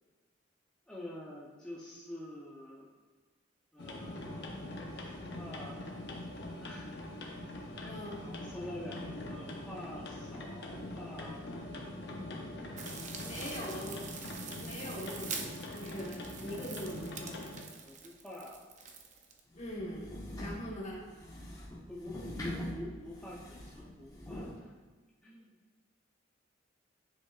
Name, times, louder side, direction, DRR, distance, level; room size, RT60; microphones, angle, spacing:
voice 1, 0.9-2.9 3.7-4.4 4.9-5.9 6.5-6.9 7.7-11.6 17.8-18.7 21.9-24.7 25.2-25.5, left 1 dB, 5° left, -7 dB, 0.8 m, -47 dB
sound 1, 3.8-17.6, left 1 dB, 60° left, 1.0 m, -43 dB
voice 2, 7.8-8.2 13.2-14.1 14.6-16.2 16.4-17.4 19.5-20.1 20.4-21.0, left 1 dB, 35° left, -3 dB, 1.4 m, -42 dB
sound 2, 12.8-19.4, right 5 dB, 40° right, 0.6 m, -45 dB
sound 3, 19.5-24.6, left 1 dB, 20° left, 1.4 m, -43 dB
9.7 x 5.1 x 2.5 m, 1.4 s
head